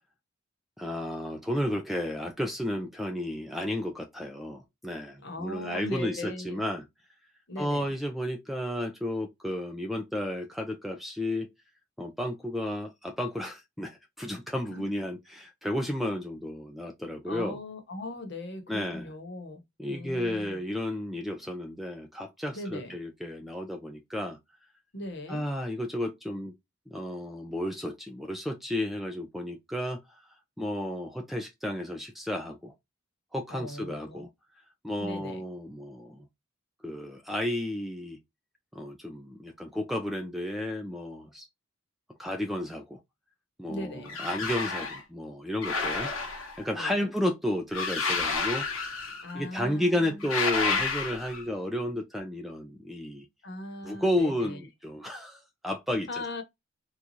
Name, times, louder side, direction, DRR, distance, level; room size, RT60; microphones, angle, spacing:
voice 1, 0.8-6.8 7.6-11.5 12.0-17.6 18.7-19.1 19.8-24.4 25.3-26.5 26.9-30.0 30.6-32.7 33.3-34.3 34.8-36.3 36.8-38.2 38.7-41.5 42.2-43.0 43.6-46.1 46.6-48.9 49.3-53.3 53.8-56.2, left 1 dB, ahead, 0.4 m, -32 dB
voice 2, 5.2-6.6 7.5-7.9 14.7-14.8 17.2-19.6 19.9-20.6 22.5-22.9 24.9-25.4 33.5-34.3 35.0-35.4 43.7-44.1 46.7-47.1 49.2-50.3 50.7-50.8 53.4-54.7 56.1-56.4, left 1 dB, 55° left, 1.0 m, -39 dB
sound 1, 44.1-45.0 45.6-46.7 47.7-49.3 50.2-51.5, left 4 dB, 75° left, 1.0 m, -30 dB
3.9 x 2.3 x 2.9 m
head